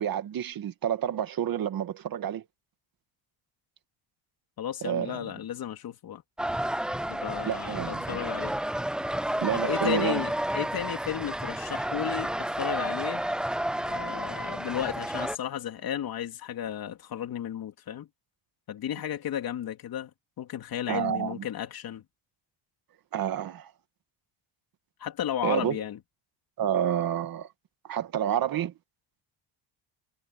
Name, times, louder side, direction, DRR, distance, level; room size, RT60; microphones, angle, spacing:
voice 1, 0.0-2.4 4.8-5.3 7.5-8.2 9.4-10.2 20.9-21.4 23.1-23.7 25.4-25.8 26.6-27.5 27.8-28.7, right 10 dB, 45° right, 2.2 m, -29 dB
voice 2, 4.6-6.2 7.1-8.6 9.5-13.2 13.8-18.1 18.7-20.1 20.4-22.0 25.0-26.0, left 10 dB, 50° left, 3.5 m, -34 dB
sound 1, 6.4-15.4, right 1 dB, ahead, 0.4 m, -31 dB
cardioid pair, 165°, 47 cm